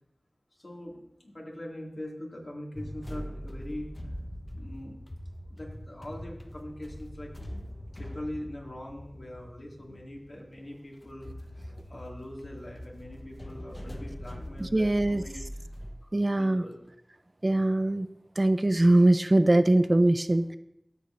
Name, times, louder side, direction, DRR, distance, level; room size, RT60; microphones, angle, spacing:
voice 1, 0.5-3.9 4.5-5.0 5.4-7.6 8.0-15.4 16.4-16.8, left 1 dB, 60° left, -2 dB, 2.1 m, -42 dB
sound 1, 2.7-15.9, equal, 35° left, 0.8 m, -42 dB
voice 2, 14.6-15.2 16.1-16.6 17.4-18.1 18.4-20.6, right 1 dB, 40° right, 11 dB, 0.4 m, -22 dB
13.5 x 6.8 x 2.5 m, 0.79 s
wide cardioid pair, 40°, 0 cm